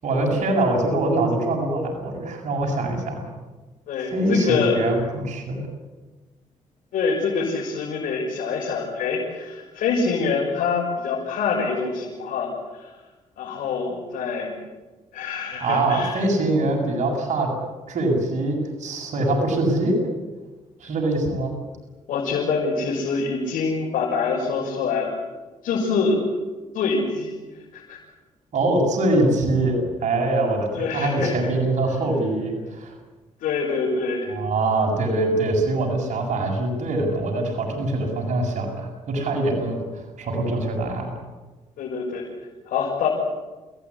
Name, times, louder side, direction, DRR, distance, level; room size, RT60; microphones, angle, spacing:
voice 1, 0.0-3.3 4.1-5.7 15.6-17.5 17.9-20.0 20.8-21.5 28.5-32.9 34.3-41.1, right 2 dB, 60° right, 0 dB, 7.7 m, -23 dB
voice 2, 3.9-4.8 6.9-12.9 13.4-14.5 15.1-16.2 22.1-25.2 25.6-26.2 26.7-27.4 27.7-28.0 30.7-31.3 33.4-34.3 41.8-42.3 42.6-43.1, left 4 dB, 85° left, -3 dB, 6.7 m, -25 dB
29.5 x 17.5 x 10.0 m, 1.2 s
cardioid pair, 100°, 14 cm